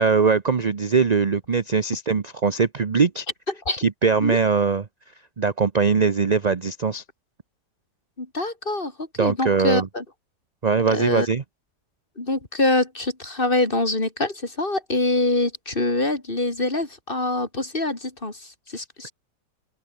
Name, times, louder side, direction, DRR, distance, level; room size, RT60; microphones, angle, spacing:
voice 1, 0.0-3.3 3.8-4.9 5.4-7.0 9.2-9.9 10.6-11.4, right 5 dB, 35° right, 0.7 m, -21 dB
voice 2, 8.2-10.0 10.9-11.3 12.2-19.1, left 2 dB, 30° left, 3.6 m, -25 dB
open air
omnidirectional pair, 1.7 m